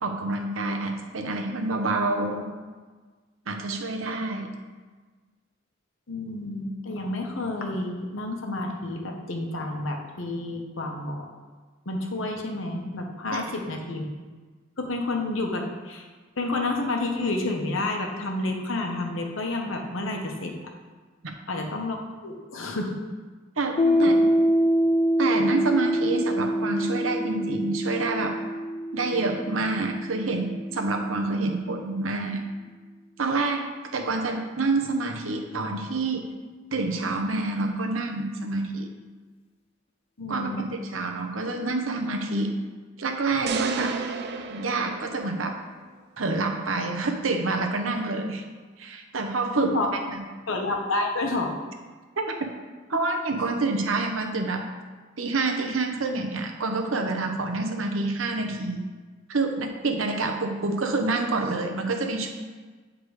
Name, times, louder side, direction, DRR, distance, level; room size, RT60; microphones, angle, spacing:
voice 1, 0.0-2.6 3.5-4.5 13.3-13.5 21.2-21.3 23.6-24.3 25.2-28.4 28.9-32.5 33.2-36.4 36.7-38.9 40.3-40.7 40.9-42.5 43.0-43.9 44.5-45.6 46.2-48.4 48.8-49.8 50.1-50.2 52.2-52.4 52.9-54.6 55.2-58.8 59.3-62.3, right 3 dB, 85° right, 4 dB, 0.9 m, -27 dB
voice 2, 6.1-11.3 11.8-14.0 14.8-16.1 16.4-20.5 21.5-23.0 23.8-24.1 40.2-40.7 49.5-49.9 50.5-51.6, left 2 dB, 80° left, 2 dB, 1.0 m, -30 dB
Piano, 23.8-31.0, equal, 30° left, 0.4 m, -25 dB
sound 1, 43.5-45.8, right 4 dB, 55° right, 0.4 m, -32 dB
8.1 x 3.7 x 4.8 m, 1.4 s
head